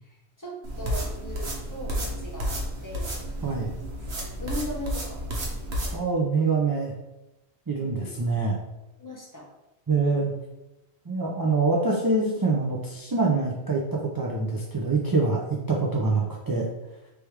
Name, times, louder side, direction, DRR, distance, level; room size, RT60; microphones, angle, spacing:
voice 1, 0.0-3.2 4.4-5.2 7.8-8.1 9.0-9.5 10.2-10.3, left 1 dB, 20° left, -3 dB, 0.9 m, -39 dB
sound 1, 0.6-5.9, equal, 80° right, 1.3 m, -31 dB
voice 2, 3.4-3.7 5.9-6.9 7.7-8.6 9.9-10.3 11.1-16.6, right 3 dB, 30° right, -3 dB, 0.4 m, -25 dB
3.4 x 3.3 x 4.5 m, 0.96 s
omnidirectional pair, 1.1 m